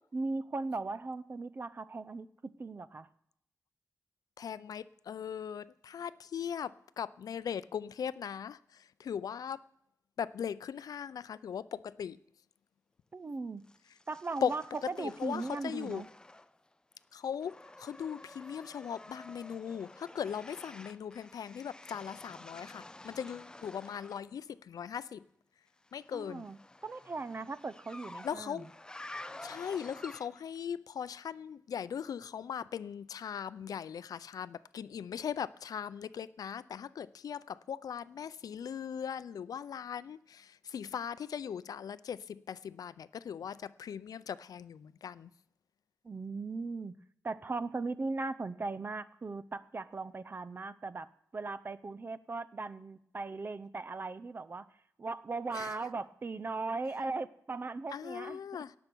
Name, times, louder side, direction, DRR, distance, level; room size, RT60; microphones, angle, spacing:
voice 1, 0.1-3.1 13.1-13.6 14.1-14.6 14.9-16.1 26.1-28.7 46.0-46.9 47.2-54.7 55.0-58.4, right 3 dB, 35° right, 0.6 m, -38 dB
voice 2, 4.4-9.6 10.2-12.2 14.4-16.1 17.1-25.2 25.9-26.4 28.2-28.7 29.4-45.3 55.5-55.8 57.9-58.7, left 8 dB, 90° left, 0.4 m, -39 dB
sound 1, 13.7-16.7 17.0-24.3 25.8-30.6, left 2 dB, 15° left, 0.4 m, -51 dB
17.5 x 6.8 x 6.1 m
wide cardioid pair, 135°, 6 cm